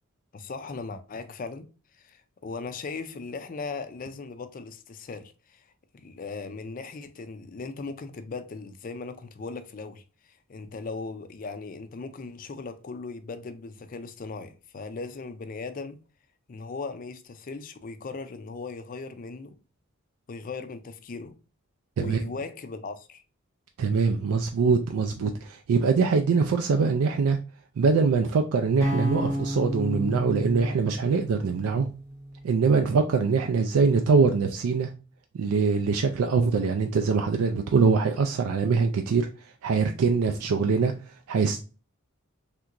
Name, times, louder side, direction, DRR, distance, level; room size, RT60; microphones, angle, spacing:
voice 1, 0.3-1.7 1.9-5.6 5.9-16.0 16.5-19.6 20.3-21.4 22.0-23.2, left 4 dB, 40° left, 0.4 m, -38 dB
voice 2, 23.8-27.4 27.8-31.9 32.4-34.9 35.3-39.3 39.6-40.9 41.3-41.6, right 5 dB, 90° right, 0.4 m, -23 dB
sound 1, 28.8-32.9, equal, 10° left, 0.8 m, -32 dB
3.4 x 2.9 x 2.4 m
head